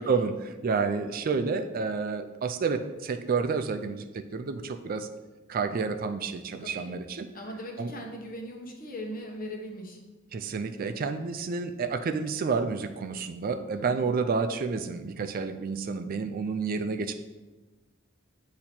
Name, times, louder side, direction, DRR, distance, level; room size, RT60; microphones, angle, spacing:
voice 1, 0.0-5.1 5.5-7.3 7.8-7.9 10.3-17.1, right 5 dB, 45° right, 8 dB, 0.4 m, -30 dB
voice 2, 6.6-7.0 7.3-10.0 13.8-14.1, equal, 45° left, 1 dB, 1.0 m, -39 dB
8.4 x 2.9 x 4.3 m, 1.2 s
head